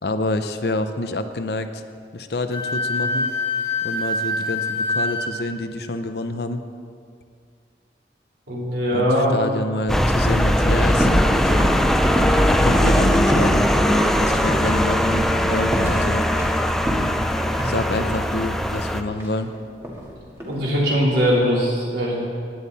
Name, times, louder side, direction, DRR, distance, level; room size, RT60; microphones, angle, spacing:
voice 1, 0.0-1.8 2.1-3.3 3.8-6.6 8.9-11.7 12.5-13.7 14.1-16.3 17.6-19.5, left 2 dB, 65° left, 9 dB, 0.7 m, -27 dB
Wind instrument woodwind instrument, 2.5-5.3, left 2 dB, 30° left, 1.5 m, -25 dB
voice 2, 8.5-9.4 20.4-22.1, equal, 75° right, -5 dB, 3.8 m, -20 dB
sound 1, 9.9-19.0, equal, ahead, 0.5 m, -19 dB
sound 2, 11.0-11.3 11.6-13.6 13.9-14.1 14.5-14.8 15.1-15.4 15.7-16.6 16.9-18.2 19.2-20.1 20.4-20.8, equal, 15° right, 2.0 m, -26 dB
17.0 x 10.5 x 4.2 m, 2.2 s
head